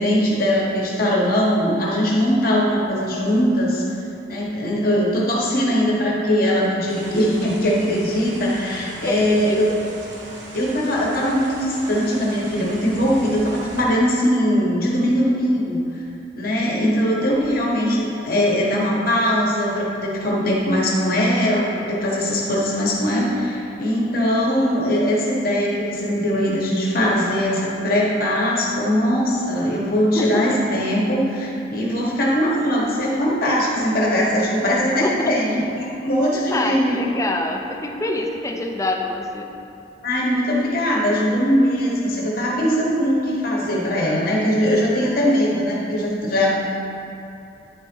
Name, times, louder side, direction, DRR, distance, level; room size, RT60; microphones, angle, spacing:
voice 1, 0.0-3.8 4.3-9.7 10.5-15.8 16.4-36.9 40.0-46.5, equal, 55° left, -4 dB, 1.5 m, -20 dB
sound 1, 6.9-13.8, right 1 dB, 85° right, 1.1 m, -39 dB
voice 2, 9.0-9.8 16.6-16.9 30.2-30.6 35.0-35.5 36.3-39.5, left 1 dB, 20° left, 3 dB, 0.5 m, -26 dB
10.0 x 4.1 x 4.5 m, 2.8 s
head